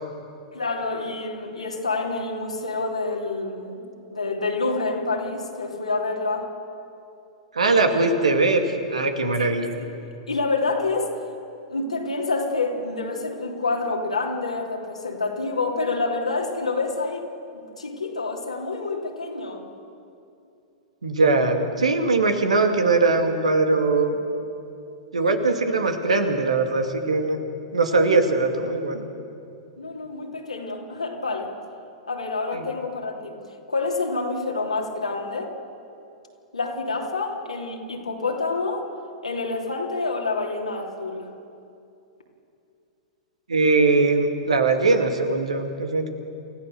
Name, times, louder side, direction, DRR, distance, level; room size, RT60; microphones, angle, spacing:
voice 1, 0.5-6.5 9.4-9.6 10.3-11.1 11.7-17.3 17.8-19.6 29.8-31.5 32.1-33.4 33.7-35.5 36.5-38.9 39.2-41.3, left 3 dB, 90° left, 0 dB, 3.1 m, -27 dB
voice 2, 7.5-8.6 8.9-9.7 21.0-24.2 25.1-27.4 27.7-29.1 32.5-32.6 43.5-46.1, right 3 dB, 85° right, 5 dB, 2.3 m, -21 dB
28.5 x 14.5 x 6.9 m, 2.6 s
hypercardioid pair, 105°, 3 cm